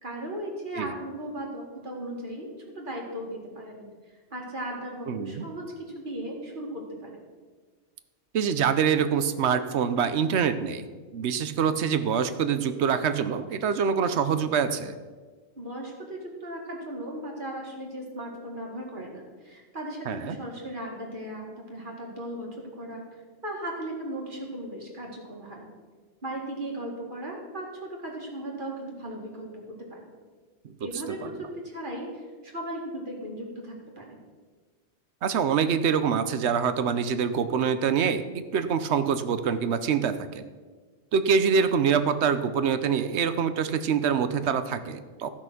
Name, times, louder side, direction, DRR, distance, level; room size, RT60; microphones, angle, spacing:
voice 1, 0.0-3.9 4.3-7.2 15.6-25.7 26.2-30.1 30.8-34.2, right 1 dB, 45° right, -1 dB, 2.1 m, -37 dB
voice 2, 5.1-5.4 8.3-10.9 11.1-14.9 20.1-20.4 30.6-30.7 31.2-31.3 35.2-40.5 41.1-45.3, right 7 dB, 75° right, 11 dB, 1.0 m, -25 dB
13.5 x 6.0 x 6.0 m, 1.4 s
omnidirectional pair, 1.2 m